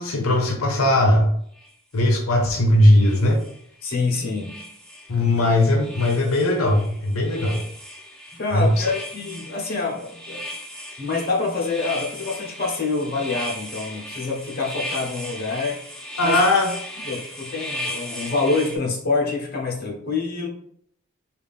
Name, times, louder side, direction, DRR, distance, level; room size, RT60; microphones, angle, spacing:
voice 1, 0.0-1.3 1.9-3.4 5.1-7.6 8.5-8.8 16.2-16.7, left 1 dB, 80° left, 2 dB, 0.7 m, -19 dB
sound 1, 1.6-1.7 2.9-3.9 4.3-5.5 5.8-18.8, left 1 dB, 5° left, 0.4 m, -36 dB
voice 2, 3.8-4.6 8.3-10.4 11.0-15.8 16.2-16.5 17.0-20.5, left 3 dB, 45° left, -1 dB, 0.8 m, -26 dB
3.5 x 2.4 x 3.5 m, 0.67 s
head